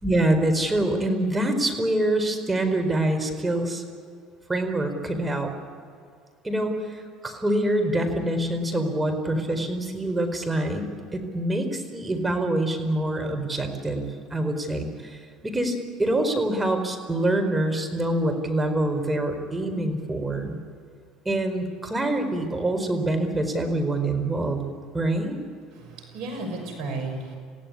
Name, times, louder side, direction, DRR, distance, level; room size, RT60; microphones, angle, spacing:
voice 1, 0.0-3.8 4.5-5.5 6.4-20.6 21.2-24.6 24.9-25.4, right 1 dB, 15° right, 5 dB, 4.6 m, -25 dB
voice 2, 25.7-27.4, right 2 dB, 70° right, 5 dB, 6.3 m, -33 dB
28.5 x 16.5 x 9.8 m, 2.3 s
hypercardioid pair, 75°, 0 cm